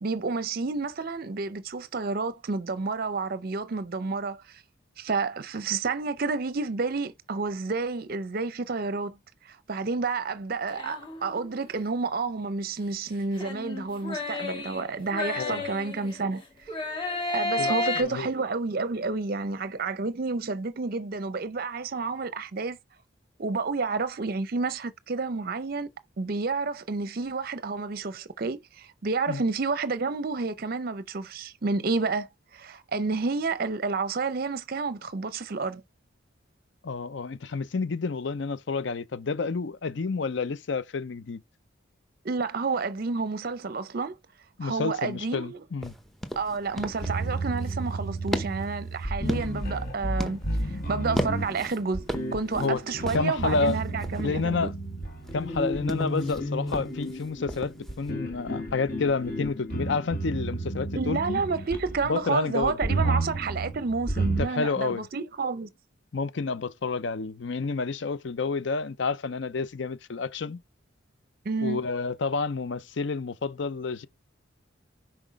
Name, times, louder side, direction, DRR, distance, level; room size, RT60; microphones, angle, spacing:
voice 1, 0.0-4.6 5.0-9.2 9.4-16.4 17.3-22.8 23.4-25.9 26.2-35.8 42.2-44.2 44.6-45.6 46.4-50.4 50.9-54.7 60.9-65.7 71.4-71.8, right 4 dB, 50° right, 0.5 m, -30 dB
sound 1, 10.7-11.6 13.4-16.3 16.7-18.0, left 2 dB, 25° left, 1.9 m, -32 dB
voice 2, 17.6-18.3 29.3-29.4 36.8-41.4 44.6-45.9 52.6-52.8 53.1-53.8 54.2-54.7 55.3-61.4 62.1-62.8 63.0-63.2 64.4-65.1 66.1-70.6 71.6-74.1, left 4 dB, 65° left, 0.6 m, -29 dB
sound 2, 45.8-58.1, equal, ahead, 0.8 m, -38 dB
sound 3, 46.7-62.1 62.6-64.5, right 2 dB, 45° left, 2.1 m, -32 dB
6.0 x 4.4 x 5.0 m
head